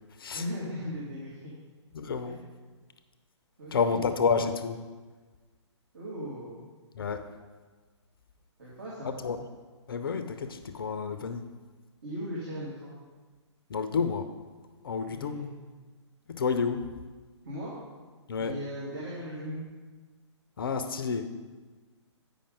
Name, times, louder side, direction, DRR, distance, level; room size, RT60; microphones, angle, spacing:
voice 1, 0.3-1.5 2.2-2.4 3.6-4.1 5.9-6.7 8.6-9.2 12.0-13.0 15.1-15.5 17.4-17.8 18.4-19.6, equal, 45° right, -6 dB, 2.0 m, -38 dB
voice 2, 1.9-2.4 3.7-4.8 6.9-7.3 9.0-9.4 9.9-11.5 13.7-14.3 14.8-15.4 16.3-16.9 18.3-18.6 20.6-21.3, left 5 dB, 50° left, 9 dB, 0.5 m, -30 dB
8.7 x 5.2 x 5.1 m, 1.3 s
figure-of-eight pair, 130°, 15 cm